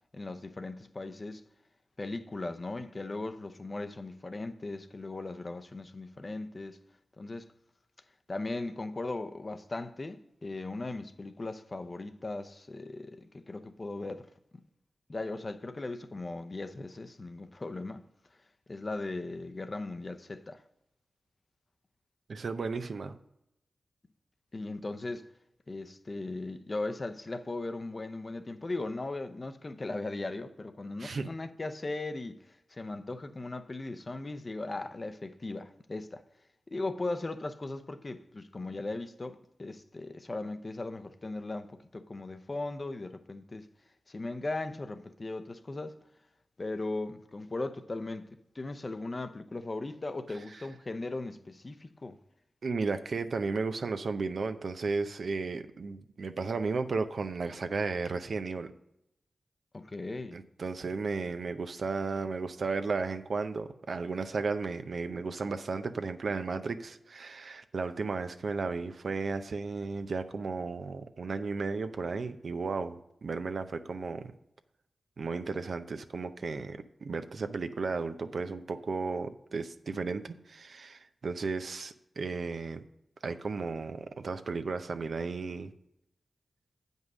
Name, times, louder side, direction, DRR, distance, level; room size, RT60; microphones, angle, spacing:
voice 1, 0.1-1.4 2.0-6.8 7.2-7.5 8.3-14.3 15.1-18.0 18.7-20.6 24.5-25.3 25.7-32.4 32.7-36.2 36.7-43.7 44.1-46.0 46.6-52.2 59.7-60.4, left 2 dB, 40° left, 0.7 m, -38 dB
voice 2, 22.3-23.2 31.0-31.3 52.6-58.7 60.3-74.3 75.2-82.8 83.2-85.7, right 4 dB, 70° right, 0.6 m, -34 dB
8.1 x 5.4 x 6.1 m
cardioid pair, 55°, 0 cm